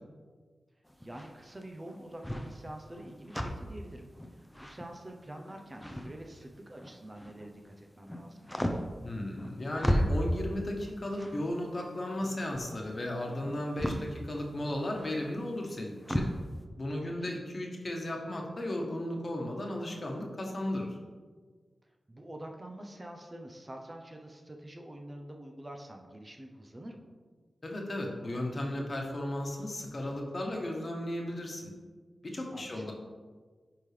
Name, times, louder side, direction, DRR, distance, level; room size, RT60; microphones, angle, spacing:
sound 1, 0.8-7.5 7.9-16.4, equal, 5° left, 0.6 m, -36 dB
voice 1, 1.0-8.5 17.0-17.4 22.1-27.1 32.5-32.9, right 1 dB, 30° right, 3 dB, 0.7 m, -46 dB
voice 2, 9.0-16.3 16.8-21.0 27.6-31.7 32.2-32.9, left 1 dB, 45° left, 1 dB, 1.3 m, -35 dB
10.0 x 3.7 x 3.3 m, 1.5 s
cardioid pair, 60°, 0 cm